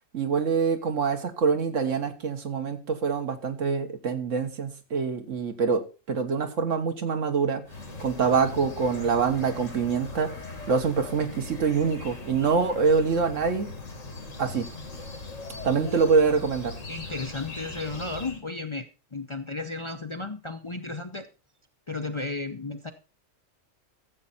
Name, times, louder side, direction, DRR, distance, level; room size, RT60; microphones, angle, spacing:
voice 1, 0.1-7.6 8.0-10.3 10.7-13.7 14.4-14.7 15.6-16.8, right 5 dB, 75° right, 6 dB, 1.7 m, -25 dB
sound 1, 7.6-18.4, left 3 dB, 75° left, 2.5 m, -40 dB
voice 2, 15.7-16.1 16.9-21.3 21.9-22.9, left 3 dB, 30° left, 6 dB, 0.6 m, -34 dB
14.0 x 7.6 x 4.2 m, 0.33 s
omnidirectional pair, 1.3 m